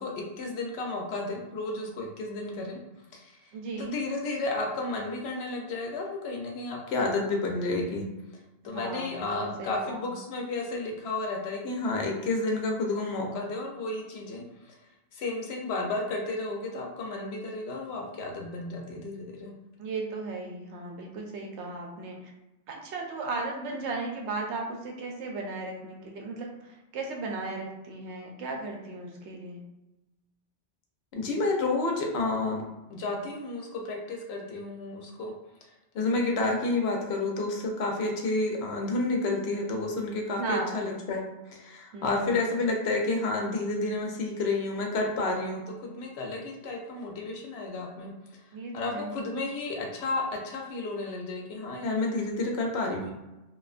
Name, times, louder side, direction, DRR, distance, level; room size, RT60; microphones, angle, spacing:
voice 1, 0.0-2.8 3.1-3.3 3.8-8.0 8.6-14.4 15.1-19.5 31.1-32.6 32.9-35.3 35.9-48.1 48.7-53.1, left 2 dB, 70° left, 1 dB, 0.8 m, -31 dB
voice 2, 3.5-3.9 8.6-10.2 19.8-22.3 22.7-29.6 40.3-40.9 41.9-42.5 48.5-49.1, right 3 dB, 80° right, 1 dB, 0.9 m, -36 dB
2.4 x 2.2 x 2.4 m, 1.0 s
omnidirectional pair, 1.2 m